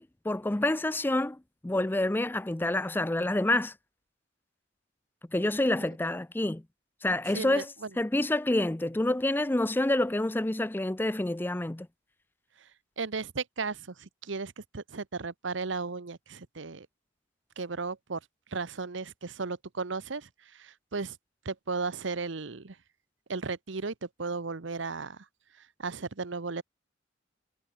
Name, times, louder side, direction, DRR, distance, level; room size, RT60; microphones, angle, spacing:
voice 1, 0.0-1.4 1.6-3.7 5.3-6.6 7.0-7.7 8.0-11.9, left 1 dB, 10° left, 0.4 m, -28 dB
voice 2, 7.3-7.9 13.0-16.9 17.6-18.2 18.5-21.2 21.4-22.8 23.3-25.2 25.8-26.6, right 4 dB, 70° right, 1.0 m, -35 dB
head